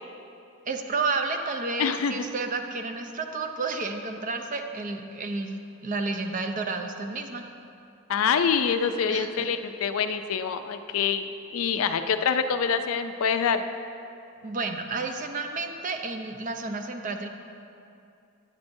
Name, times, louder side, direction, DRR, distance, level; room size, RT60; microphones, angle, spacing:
voice 1, 0.7-7.4 9.1-9.5 14.4-17.3, right 3 dB, 35° right, 5 dB, 0.5 m, -31 dB
voice 2, 1.8-2.2 8.1-11.3 11.5-13.6, left 6 dB, 70° left, 9 dB, 0.4 m, -25 dB
9.5 x 8.4 x 2.6 m, 2.6 s
head